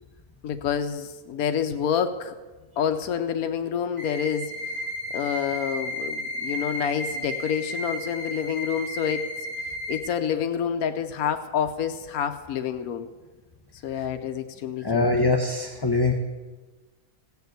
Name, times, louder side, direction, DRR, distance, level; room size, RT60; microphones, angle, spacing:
voice 1, 0.4-2.3 2.8-4.5 5.1-9.3 9.9-13.1 13.8-15.3, left 8 dB, 85° left, 8 dB, 1.2 m, -28 dB
sound 1, 4.0-10.0, left 1 dB, 65° right, 4.5 m, -33 dB
voice 2, 14.8-16.1, left 3 dB, 20° left, 3 dB, 0.8 m, -22 dB
16.5 x 7.0 x 8.1 m, 1.3 s
omnidirectional pair, 1.5 m